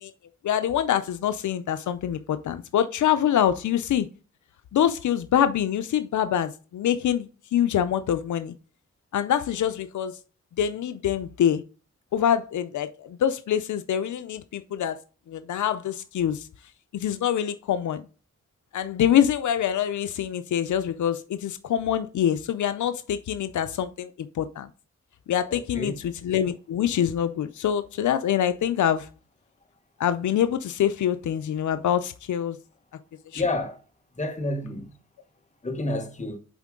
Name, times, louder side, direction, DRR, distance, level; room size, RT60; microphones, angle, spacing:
voice 1, 0.4-4.1 4.7-8.5 9.1-10.2 10.6-11.6 12.1-15.0 15.3-16.5 16.9-18.0 18.7-24.1 24.4-24.7 25.3-29.1 30.0-32.6 33.3-33.4, left 10 dB, 85° left, 0.5 m, -25 dB
voice 2, 25.5-26.0 33.3-33.8 34.2-34.9 35.6-36.4, left 2 dB, 25° left, 1.3 m, -29 dB
7.1 x 4.5 x 3.7 m
cardioid pair, 85°, 29 cm